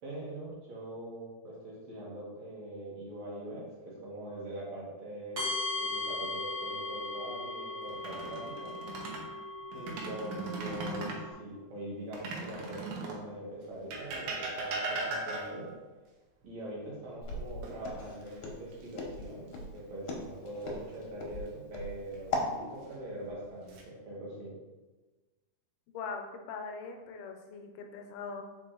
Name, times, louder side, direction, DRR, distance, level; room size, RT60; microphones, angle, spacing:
voice 1, 0.0-5.5 5.8-8.7 9.7-15.7 16.4-24.5, right 1 dB, 60° right, -6 dB, 2.6 m, -43 dB
sound 1, 5.4-11.3, left 2 dB, 35° right, 1.7 m, -38 dB
sound 2, 7.9-9.3 9.7-11.2 12.1-13.3 13.9-15.7 17.6-18.3 18.7-18.9 21.8-22.4 23.2-23.8, right 2 dB, 85° right, 2.6 m, -38 dB
Walk footsteps, 17.2-22.5, left 3 dB, 65° left, 2.0 m, -38 dB
voice 2, 25.9-28.4, left 5 dB, 85° left, 4 dB, 2.3 m, -41 dB
5.2 x 4.7 x 3.8 m, 1.2 s
omnidirectional pair, 3.8 m